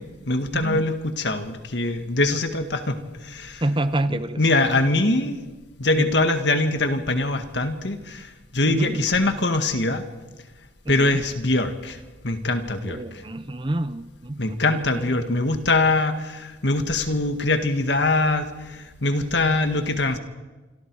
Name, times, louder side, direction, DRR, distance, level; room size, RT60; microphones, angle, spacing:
voice 1, 0.0-3.6 4.1-5.4 5.8-10.0 10.9-13.2 14.4-20.2, left 2 dB, 65° left, 7 dB, 1.9 m, -23 dB
voice 2, 0.5-0.9 2.2-2.3 3.6-4.4 4.8-4.9 5.9-6.1 8.7-9.0 10.8-11.2 12.8-15.3, right 1 dB, 25° right, 12 dB, 0.8 m, -28 dB
26.5 x 26.0 x 4.8 m, 1.2 s
head